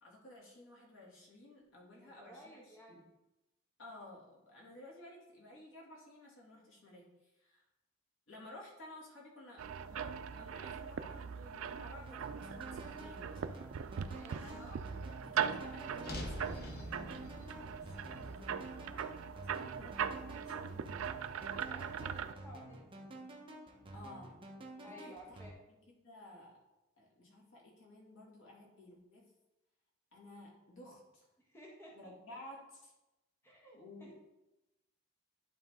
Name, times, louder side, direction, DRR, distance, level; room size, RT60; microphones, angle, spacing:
voice 1, 0.0-3.0 3.8-7.6 8.3-13.6 13.9-14.8 15.1-19.1 19.6-21.3 23.9-24.4 24.8-25.4 26.0-26.6 27.0-29.3 30.1-31.3 31.9-32.9 33.7-34.2, left 1 dB, 70° left, -4 dB, 2.3 m, -55 dB
voice 2, 2.0-3.0 14.1-14.7 21.5-23.3 24.8-25.6 31.4-32.1 33.4-34.1, equal, 10° left, -3 dB, 1.3 m, -56 dB
sound 1, 9.6-22.3, right 7 dB, 90° right, 0.4 m, -40 dB
sound 2, 12.0-25.5, right 1 dB, 25° right, 1.0 m, -51 dB
sound 3, 16.0-20.3, left 1 dB, 50° left, 1.0 m, -47 dB
11.0 x 4.0 x 3.7 m, 0.96 s
head